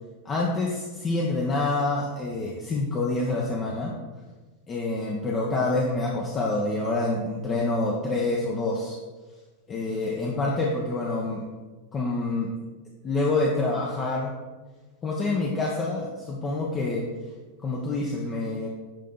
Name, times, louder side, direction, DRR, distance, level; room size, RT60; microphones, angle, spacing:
voice 1, 0.2-3.9 4.7-9.0 9.7-11.5 11.9-12.5 13.0-14.3 15.0-17.0 17.6-18.7, left 2 dB, 25° left, -2 dB, 1.2 m, -27 dB
10.5 x 3.7 x 5.5 m, 1.3 s
figure-of-eight pair, 90°, 0 cm